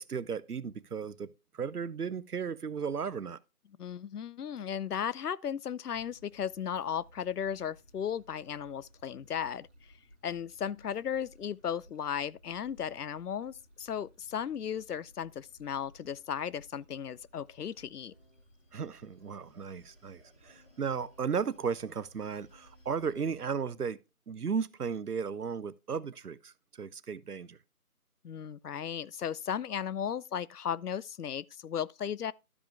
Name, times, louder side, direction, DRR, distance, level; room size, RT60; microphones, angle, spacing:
voice 1, 0.0-3.4 18.7-24.0 24.3-27.6, right 6 dB, 80° right, 0.8 m, -35 dB
voice 2, 3.8-9.7 10.2-18.1 28.2-32.3, left 8 dB, 85° left, 0.6 m, -35 dB
Stream / Traffic noise roadway noise / Trickle dribble, 5.9-23.4, equal, 5° left, 2.7 m, -60 dB
sound 1, 17.3-23.3, equal, 20° left, 2.4 m, -66 dB
12.0 x 5.2 x 3.4 m
figure-of-eight pair, 175°, 45 cm